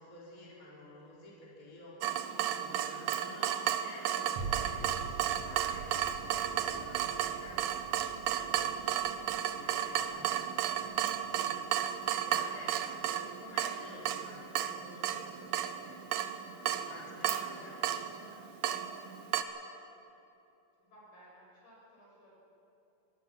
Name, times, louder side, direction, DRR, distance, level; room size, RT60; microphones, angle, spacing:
voice 1, 0.0-2.0 2.5-9.0 9.5-11.7 12.1-16.1 16.6-18.3, left 2 dB, 25° left, -6 dB, 4.0 m, -51 dB
Water tap faucet / Drip, 2.0-19.4, right 10 dB, 90° right, 2.5 m, -34 dB
sound 1, 4.4-12.9 13.4-13.5, right 4 dB, 55° right, 3.0 m, -46 dB
voice 2, 20.8-22.3, right 1 dB, 70° left, -4 dB, 7.7 m, -58 dB
23.5 x 19.0 x 6.0 m, 2.9 s
omnidirectional pair, 3.8 m